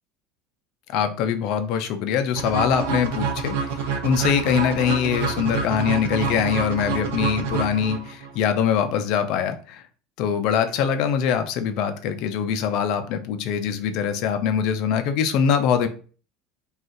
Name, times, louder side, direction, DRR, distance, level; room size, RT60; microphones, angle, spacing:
voice 1, 0.9-3.6 4.0-9.8 10.2-15.9, left 7 dB, 65° left, 8 dB, 0.4 m, -23 dB
sound 1, 2.4-8.3, right 5 dB, 80° right, 0.6 m, -27 dB
2.5 x 2.4 x 3.7 m, 0.38 s
supercardioid pair, 100°, 0 cm